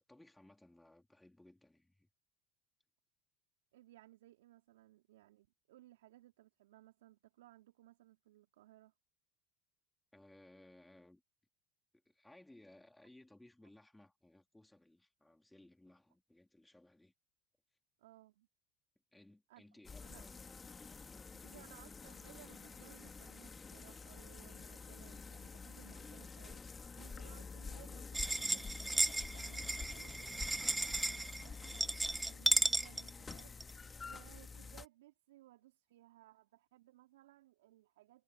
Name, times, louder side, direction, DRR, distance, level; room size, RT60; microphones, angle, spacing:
voice 1, 0.0-2.1 10.1-11.2 12.1-17.1 19.1-21.7, left 1 dB, 5° left, 4.0 m, -62 dB
voice 2, 3.7-8.9 18.0-18.5 19.5-19.6 20.0-20.3 21.4-33.5 34.0-38.2, right 15 dB, 85° right, 4.6 m, -62 dB
sound 1, 19.8-34.9, left 4 dB, 25° left, 2.3 m, -49 dB
sound 2, 28.1-33.7, right 2 dB, 10° right, 0.4 m, -35 dB
hypercardioid pair, 90°, 0 cm